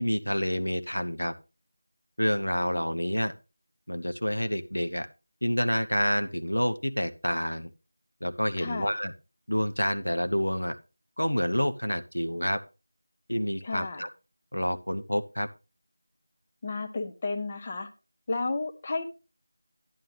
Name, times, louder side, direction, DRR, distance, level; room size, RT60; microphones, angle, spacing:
voice 1, 0.0-1.3 2.2-3.3 3.9-5.1 5.4-7.7 8.2-9.1 9.5-10.8 11.2-12.6 13.3-14.1 14.5-15.5, equal, 90° left, 8 dB, 0.9 m, -28 dB
voice 2, 8.6-9.0 13.6-14.1 16.6-17.9 18.3-19.0, left 3 dB, 25° left, 6 dB, 0.8 m, -32 dB
11.0 x 9.4 x 3.3 m, 0.30 s
figure-of-eight pair, 170°, 0 cm